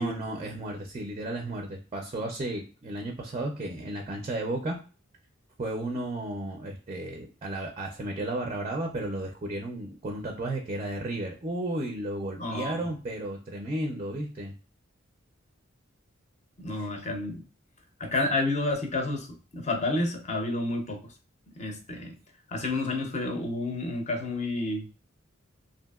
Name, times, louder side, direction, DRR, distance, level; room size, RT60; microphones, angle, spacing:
voice 1, 0.0-4.8 5.6-14.5 16.8-16.9, right 1 dB, 30° right, 2 dB, 0.4 m, -33 dB
voice 2, 12.4-12.9 16.6-17.4 18.0-21.1 21.6-22.2 22.5-24.9, left 2 dB, 35° left, 4 dB, 0.6 m, -30 dB
2.7 x 2.6 x 2.2 m, 0.36 s
head